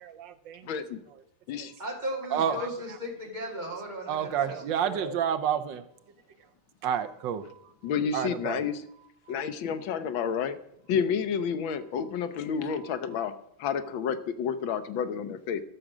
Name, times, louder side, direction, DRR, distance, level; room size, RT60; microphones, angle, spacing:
voice 1, 0.0-0.7 1.6-1.7 2.3-2.6 4.1-5.8 6.8-7.6 8.1-8.6 9.3-9.4 13.1-13.3, right 9 dB, 70° right, 10 dB, 1.3 m, -30 dB
voice 2, 0.6-1.0 1.5-1.7 7.8-8.8 9.3-10.6 10.9-13.3 13.6-15.6, left 7 dB, 75° left, 10 dB, 1.6 m, -30 dB
voice 3, 1.8-5.2, equal, 20° right, 0 dB, 2.2 m, -36 dB
12.5 x 6.4 x 6.1 m, 0.73 s
omnidirectional pair, 2.3 m